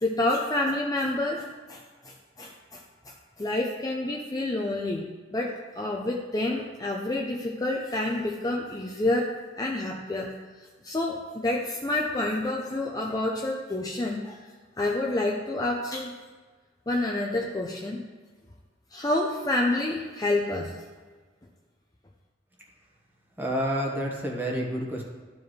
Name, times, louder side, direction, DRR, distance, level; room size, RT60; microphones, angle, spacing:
voice 1, 0.0-5.0 5.3-9.3 9.6-10.4 10.8-14.4 14.8-16.1 16.9-18.0 18.9-20.7, left 2 dB, 20° left, -1 dB, 0.5 m, -28 dB
voice 2, 23.4-25.0, equal, 10° right, -2 dB, 1.4 m, -29 dB
12.5 x 4.7 x 3.2 m, 1.5 s
head